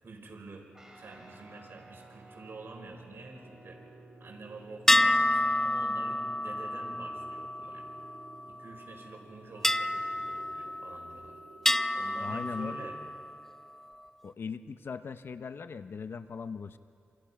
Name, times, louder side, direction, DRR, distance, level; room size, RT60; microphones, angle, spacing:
voice 1, 0.0-0.7 0.9-3.8 4.2-7.9 8.5-11.3 11.9-13.0, right 3 dB, 55° right, 1 dB, 5.7 m, -48 dB
Guitar, 0.7-10.6, right 1 dB, 15° right, 5.5 m, -55 dB
sound 1, 3.4-13.1, right 5 dB, 85° right, 2.5 m, -56 dB
sound 2, 4.9-8.6 9.6-11.2 11.7-13.3, left 1 dB, 10° left, 0.5 m, -29 dB
voice 2, 12.2-12.8 14.2-16.8, left 5 dB, 60° left, 11 dB, 0.8 m, -39 dB
27.5 x 27.5 x 6.0 m, 2.4 s
cardioid pair, 85°, 4 cm